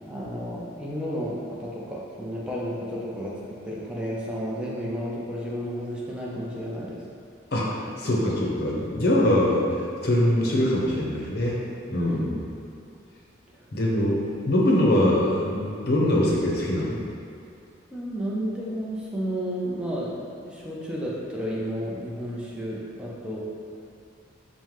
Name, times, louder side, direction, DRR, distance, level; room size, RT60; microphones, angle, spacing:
voice 1, 0.1-7.0 9.2-9.4 11.9-12.3 13.6-13.7 17.9-23.4, equal, 5° right, -6 dB, 0.5 m, -32 dB
voice 2, 7.5-9.6 10.0-12.4 13.7-17.0, left 1 dB, 55° left, -4 dB, 0.7 m, -23 dB
5.3 x 2.1 x 3.1 m, 2.5 s
head